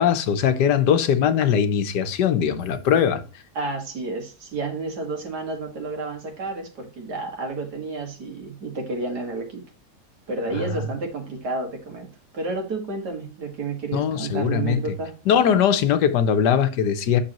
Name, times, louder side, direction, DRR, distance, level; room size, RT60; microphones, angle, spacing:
voice 1, 0.0-3.2 10.5-10.8 13.9-14.8 15.3-17.2, left 8 dB, 85° left, 1.5 m, -20 dB
voice 2, 3.6-9.6 10.3-12.1 12.3-15.1, right 3 dB, 75° right, 2.4 m, -30 dB
8.6 x 6.1 x 3.0 m
omnidirectional pair, 1.8 m